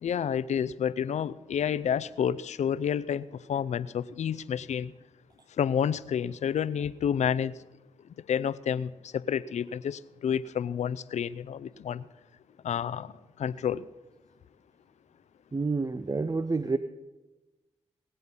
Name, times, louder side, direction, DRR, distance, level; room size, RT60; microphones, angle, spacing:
voice 1, 0.0-4.9 5.6-7.5 8.3-12.0 12.6-13.1 13.4-13.8, left 8 dB, 70° left, 16 dB, 0.5 m, -29 dB
voice 2, 15.5-16.8, right 3 dB, 30° right, 11 dB, 0.6 m, -28 dB
18.5 x 7.8 x 5.5 m, 1.1 s
supercardioid pair, 40°, 12 cm